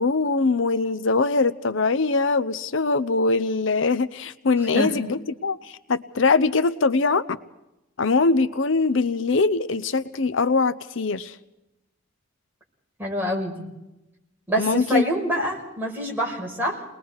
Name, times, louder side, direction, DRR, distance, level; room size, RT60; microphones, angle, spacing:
voice 1, 0.0-7.4 8.0-11.4 14.6-15.0, left 3 dB, 70° left, 14 dB, 0.7 m, -22 dB
voice 2, 13.0-13.7 14.5-16.8, equal, 10° right, -3 dB, 6.0 m, -26 dB
29.0 x 20.5 x 4.7 m, 0.94 s
head